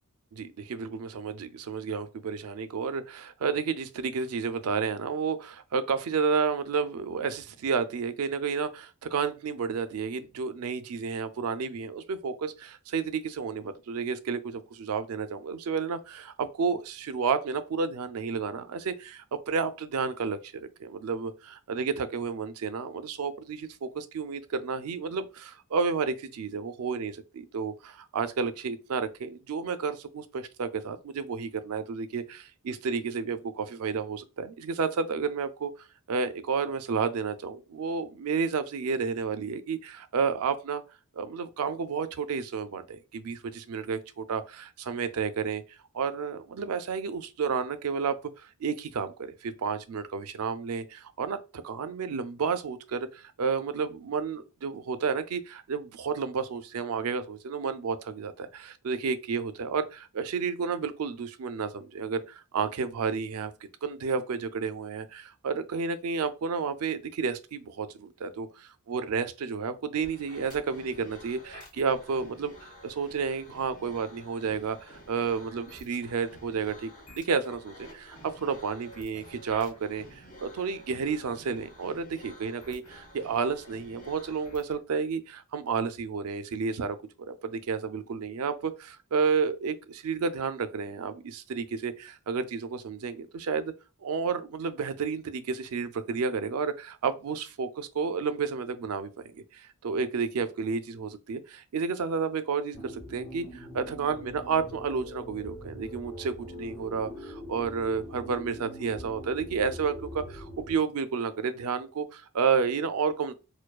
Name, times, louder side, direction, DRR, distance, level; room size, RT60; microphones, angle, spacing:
voice 1, 0.3-35.7 36.1-40.8 41.2-45.6 45.9-63.5 63.8-80.0 80.4-93.7 94.0-113.3, right 5 dB, 75° right, 0.4 m, -31 dB
sound 1, 70.0-84.8, equal, 35° left, 1.3 m, -50 dB
sound 2, 102.7-110.7, equal, 70° left, 0.9 m, -43 dB
4.4 x 2.2 x 2.3 m
head